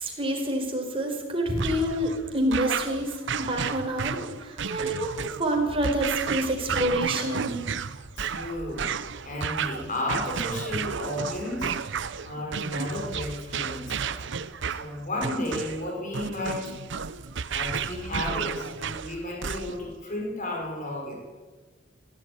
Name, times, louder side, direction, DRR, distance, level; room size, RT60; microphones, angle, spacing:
voice 1, 0.0-7.6, right 1 dB, 30° right, 1 dB, 4.8 m, -28 dB
sound 1, 1.6-20.0, right 6 dB, 65° right, 0.8 m, -32 dB
voice 2, 8.2-8.9 9.2-11.8 12.2-14.1 14.8-16.7 17.5-21.2, left 1 dB, 45° left, 0 dB, 5.7 m, -33 dB
18.0 x 15.0 x 9.7 m, 1.3 s
head